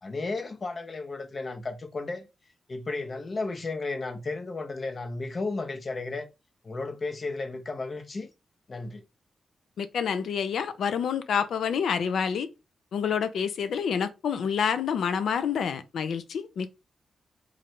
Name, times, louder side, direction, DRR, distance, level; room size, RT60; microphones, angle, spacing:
voice 1, 0.0-2.3 2.7-6.3 6.6-8.3 8.7-9.0, left 3 dB, 45° left, 0.7 m, -33 dB
voice 2, 9.8-12.5 12.9-16.7, left 7 dB, 85° left, 0.4 m, -28 dB
3.2 x 2.5 x 4.3 m
cardioid pair, 80°, 0 cm